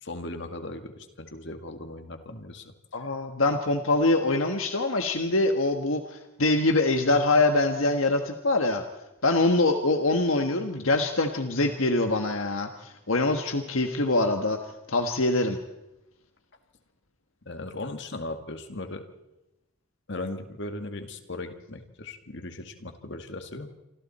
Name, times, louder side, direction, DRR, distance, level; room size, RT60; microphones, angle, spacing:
voice 1, 0.0-2.7 17.5-19.0 20.1-23.7, left 2 dB, 60° left, 6 dB, 2.1 m, -37 dB
voice 2, 2.9-8.8 9.2-14.6 14.9-15.6, left 2 dB, 75° left, 5 dB, 1.5 m, -24 dB
27.5 x 25.5 x 4.3 m, 0.94 s
head